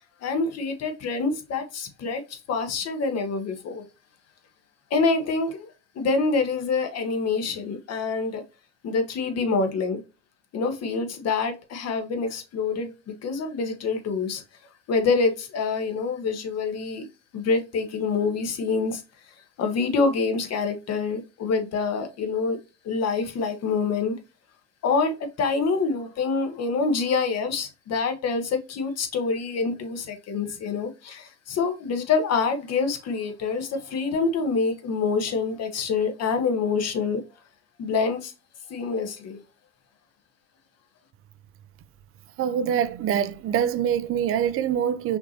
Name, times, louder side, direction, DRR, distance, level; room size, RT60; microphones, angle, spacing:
voice 1, 0.2-3.8 4.9-5.7 5.9-8.4 8.8-10.0 10.5-12.9 13.2-14.4 14.9-17.1 17.3-19.0 19.6-22.6 22.8-24.2 24.8-37.2 37.8-38.3 38.7-39.4, left 4 dB, 40° left, 1.3 m, -26 dB
voice 2, 42.4-45.2, right 9 dB, 35° right, 0.6 m, -24 dB
5.8 x 2.8 x 2.8 m
hypercardioid pair, 90°, 41 cm